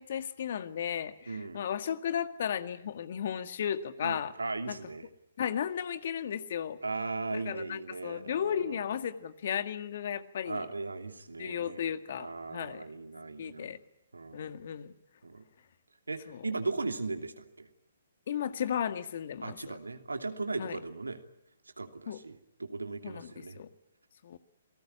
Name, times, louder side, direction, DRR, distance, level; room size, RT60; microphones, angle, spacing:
voice 1, 0.0-4.3 4.7-4.8 5.4-6.8 7.3-10.7 11.4-12.8 13.4-13.8 14.3-14.9 16.3-16.5 18.3-19.6 20.6-20.8 22.1-22.2 23.0-23.7 24.2-24.4, left 8 dB, 55° left, 11 dB, 1.9 m, -34 dB
voice 2, 1.3-1.6 4.0-5.1 6.8-8.8 10.4-11.8 12.2-13.8 14.1-14.5 15.2-15.4 16.1-17.7 19.4-21.2 21.8-23.6, right 3 dB, 85° right, 7 dB, 2.8 m, -37 dB
28.0 x 18.5 x 10.0 m, 0.85 s
figure-of-eight pair, 130°, 0 cm